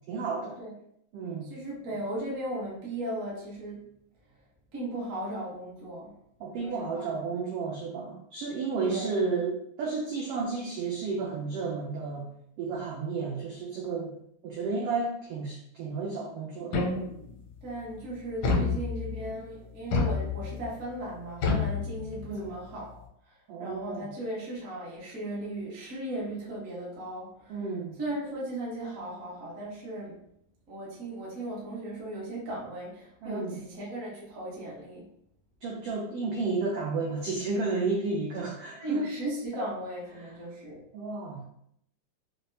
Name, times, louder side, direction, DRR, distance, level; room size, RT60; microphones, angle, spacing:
voice 1, 0.1-0.6 1.1-1.5 6.4-12.3 12.6-14.1 14.4-16.9 18.5-18.8 22.3-22.6 23.5-24.1 27.5-28.0 33.2-33.6 35.6-39.0 40.9-41.5, right 4 dB, 80° right, -2 dB, 1.3 m, -32 dB
voice 2, 1.4-3.8 4.7-6.1 6.6-7.1 8.8-9.1 17.6-23.0 23.6-27.6 28.0-30.2 30.7-35.1 38.8-40.8, right 1 dB, 55° right, -6 dB, 0.8 m, -36 dB
sound 1, 16.7-17.4 18.4-19.3 19.9-20.7 21.4-22.4, left 4 dB, 75° left, 1.4 m, -29 dB
5.7 x 2.1 x 2.7 m, 0.72 s
omnidirectional pair, 3.3 m